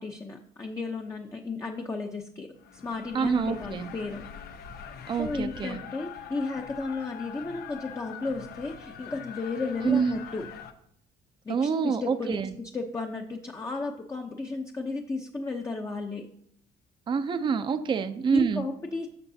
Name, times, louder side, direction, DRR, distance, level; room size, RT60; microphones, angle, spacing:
voice 1, 0.0-4.2 4.8-4.9 5.2-10.5 11.5-16.3 18.3-19.1, left 3 dB, 20° left, 3 dB, 0.7 m, -34 dB
sound 1, 2.6-10.7, left 7 dB, 65° left, 0.8 m, -43 dB
voice 2, 3.1-3.9 5.1-5.8 9.8-10.2 11.5-12.5 17.1-18.7, right 6 dB, 30° right, 10 dB, 0.5 m, -27 dB
13.0 x 6.4 x 2.7 m, 0.71 s
cardioid pair, 110°, 17 cm